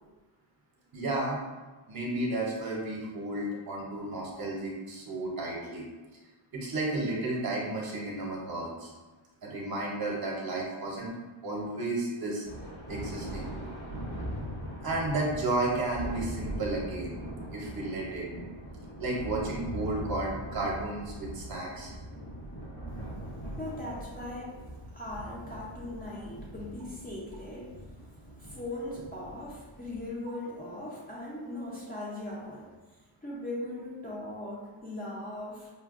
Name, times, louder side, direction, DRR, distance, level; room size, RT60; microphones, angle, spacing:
voice 1, 0.9-1.4 1.9-5.9 6.5-8.9 9.4-11.1 11.4-12.5 12.9-13.5 14.8-17.2 17.5-18.3 19.0-21.9, right 2 dB, 50° right, -2 dB, 0.7 m, -32 dB
Thunder, 12.4-30.1, equal, 85° left, 1.5 m, -41 dB
voice 2, 23.6-35.7, left 1 dB, 20° left, -6 dB, 0.6 m, -40 dB
5.5 x 2.2 x 2.4 m, 1.2 s
wide cardioid pair, 175°, 48 cm